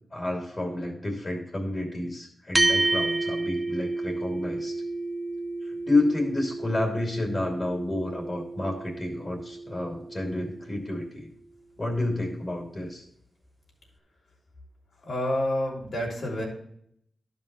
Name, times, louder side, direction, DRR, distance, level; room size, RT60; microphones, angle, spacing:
voice 1, 0.1-4.8 5.6-11.3 11.8-13.0, left 2 dB, 35° left, 0 dB, 2.4 m, -30 dB
sound 1, 2.5-11.2, right 2 dB, 20° right, 0.8 m, -31 dB
voice 2, 15.0-16.4, left 1 dB, 65° left, -2 dB, 3.2 m, -28 dB
12.0 x 5.3 x 4.0 m, 0.71 s
cardioid pair, 80°, 0 cm